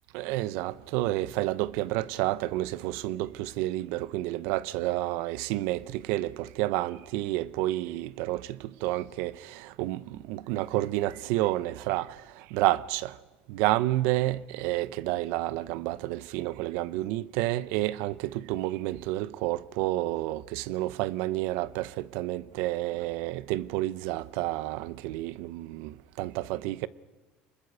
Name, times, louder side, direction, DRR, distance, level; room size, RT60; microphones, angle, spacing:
voice 1, 0.1-8.4 8.8-9.3 9.8-10.0 10.3-12.1 12.5-13.1 13.5-25.9 26.2-26.9, right 16 dB, 75° right, 0.7 m, -30 dB
25.5 x 21.0 x 6.7 m
cardioid pair, 150°, 4 cm